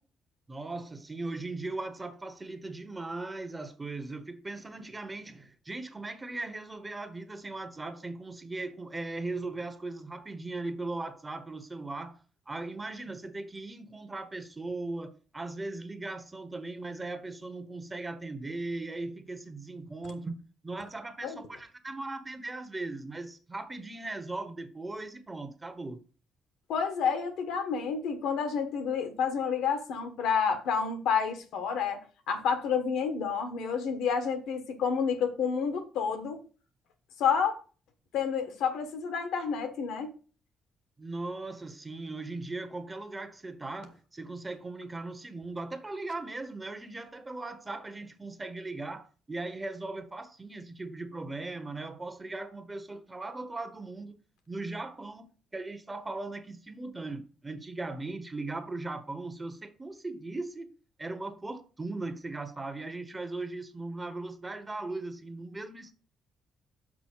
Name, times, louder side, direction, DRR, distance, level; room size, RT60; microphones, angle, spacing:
voice 1, 0.5-12.2 12.5-20.4 20.6-26.0 41.0-54.2 54.5-55.3 55.5-60.7 61.0-65.9, right 2 dB, 20° right, 1.1 m, -38 dB
voice 2, 26.7-32.0 32.3-36.4 37.2-37.6 38.1-40.1, left 6 dB, 85° left, 1.6 m, -29 dB
6.1 x 4.9 x 6.5 m
cardioid pair, 90°, 0 cm